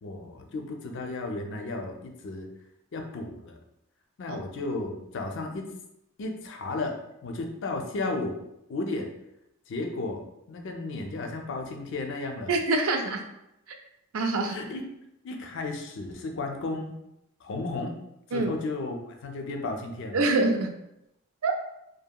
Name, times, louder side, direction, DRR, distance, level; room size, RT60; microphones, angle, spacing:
voice 1, 0.0-2.5 2.9-3.6 4.2-5.6 6.2-6.9 7.2-8.4 8.7-9.1 9.7-10.2 10.5-12.5 14.4-14.8 15.2-16.9 17.4-17.9 18.3-20.2, left 2 dB, 60° left, 3 dB, 0.4 m, -33 dB
voice 2, 12.5-13.2 14.1-14.5 18.3-18.5 20.1-20.7 21.4-21.5, right 3 dB, 70° right, 4 dB, 0.4 m, -25 dB
2.8 x 2.6 x 2.2 m, 0.84 s
head